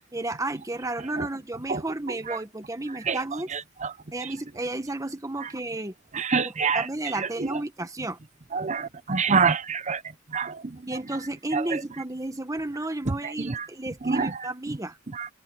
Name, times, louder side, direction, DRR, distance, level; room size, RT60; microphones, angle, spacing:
voice 1, 0.0-3.5 4.1-5.9 6.4-8.2 10.9-15.0, right 2 dB, 15° right, 1.5 m, -32 dB
voice 2, 3.5-3.9 6.1-6.8 7.2-7.5 8.5-10.0 10.3-10.6 11.5-11.8 13.4-13.6 14.1-14.3 15.1-15.3, right 5 dB, 35° right, 0.8 m, -26 dB
head